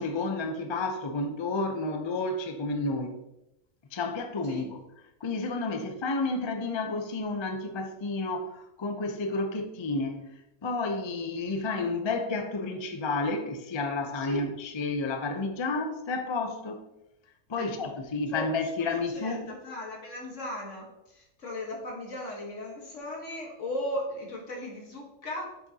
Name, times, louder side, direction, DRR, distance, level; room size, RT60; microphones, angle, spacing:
voice 1, 0.0-3.2 3.9-4.7 5.2-10.2 10.6-16.8 17.5-19.5, left 3 dB, 35° left, 5 dB, 0.4 m, -31 dB
voice 2, 18.8-25.6, left 1 dB, 65° left, 0 dB, 1.7 m, -37 dB
7.7 x 6.0 x 2.8 m, 0.89 s
omnidirectional pair, 1.4 m